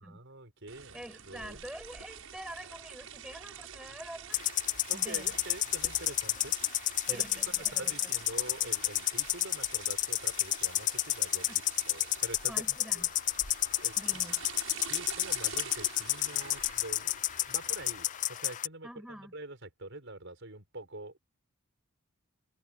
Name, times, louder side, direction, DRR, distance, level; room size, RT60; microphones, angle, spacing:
voice 1, 0.1-1.0 1.3-1.7 4.9-6.5 7.1-12.6 12.9-13.1 13.8-14.2 14.9-17.2 17.5-21.2, right 2 dB, 60° right, 5.9 m, -46 dB
sound 1, 0.7-18.4, right 7 dB, 80° right, 6.6 m, -47 dB
voice 2, 0.9-4.4 4.9-5.4 6.0-6.5 7.1-7.9 11.5-11.6 12.5-13.1 14.0-14.4 18.8-19.3, equal, 5° right, 5.7 m, -46 dB
sound 2, 4.3-18.7, left 14 dB, 35° left, 0.4 m, -31 dB
sound 3, 7.1-11.4, equal, 25° right, 7.4 m, -62 dB
head